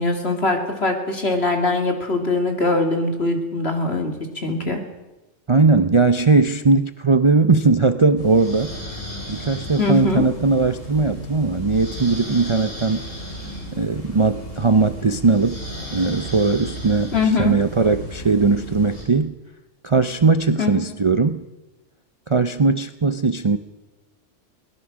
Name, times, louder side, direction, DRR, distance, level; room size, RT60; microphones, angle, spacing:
voice 1, 0.0-4.8 9.8-10.3 17.1-17.6 20.6-21.0, left 2 dB, 55° left, 4 dB, 3.0 m, -22 dB
voice 2, 5.5-8.7 9.3-13.0 13.7-15.6 15.9-17.1 17.4-19.4 19.8-21.5 22.3-23.6, right 4 dB, 35° right, 10 dB, 0.6 m, -19 dB
sound 1, 8.2-19.0, equal, 75° left, 7.5 m, -34 dB
22.5 x 19.5 x 6.2 m, 1.0 s
omnidirectional pair, 1.3 m